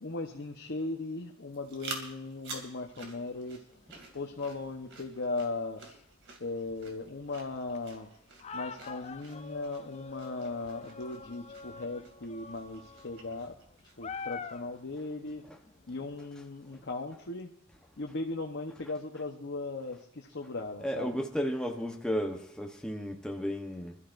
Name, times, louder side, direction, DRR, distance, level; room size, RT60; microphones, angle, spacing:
voice 1, 0.0-3.6 4.1-5.8 6.4-8.1 8.5-13.6 14.0-15.4 15.9-17.5 18.0-21.2, left 3 dB, 60° left, 1.0 m, -38 dB
sound 1, 1.5-14.2, right 3 dB, 60° right, 2.5 m, -49 dB
sound 2, 3.2-4.4 4.7-5.2 5.8-6.0 6.7-6.8 7.2-16.2, left 5 dB, 30° left, 0.6 m, -46 dB
voice 2, 20.8-24.0, equal, 5° left, 1.0 m, -33 dB
25.5 x 13.0 x 2.6 m
head